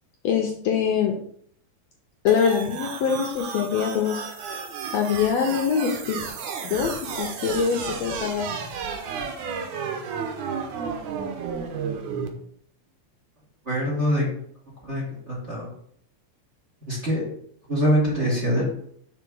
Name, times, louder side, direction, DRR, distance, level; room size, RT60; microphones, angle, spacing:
voice 1, 0.2-1.2 2.2-4.3 4.9-6.2 6.5-8.5, left 7 dB, 70° left, 2 dB, 1.8 m, -24 dB
sound 1, 2.3-12.3, right 6 dB, 80° right, 2.3 m, -32 dB
voice 2, 13.7-14.2 14.8-15.7 16.8-17.2 17.7-18.6, equal, 25° right, -5 dB, 2.5 m, -24 dB
5.6 x 4.1 x 6.2 m, 0.64 s
omnidirectional pair, 3.4 m